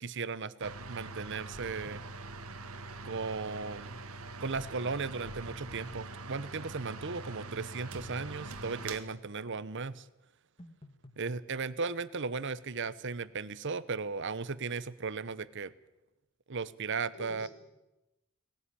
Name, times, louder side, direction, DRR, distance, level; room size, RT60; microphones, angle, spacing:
voice 1, 0.0-2.0 3.0-4.0 4.4-10.1 11.2-15.7 16.5-17.5, right 4 dB, 55° right, 16 dB, 0.9 m, -36 dB
sound 1, 0.6-9.0, right 3 dB, 85° right, 1.9 m, -43 dB
sound 2, 5.3-6.2 10.6-11.5, left 1 dB, 25° left, 1.6 m, -53 dB
voice 2, 17.1-17.5, left 1 dB, 85° left, 3 dB, 5.2 m, -51 dB
19.0 x 18.0 x 9.9 m, 0.97 s
head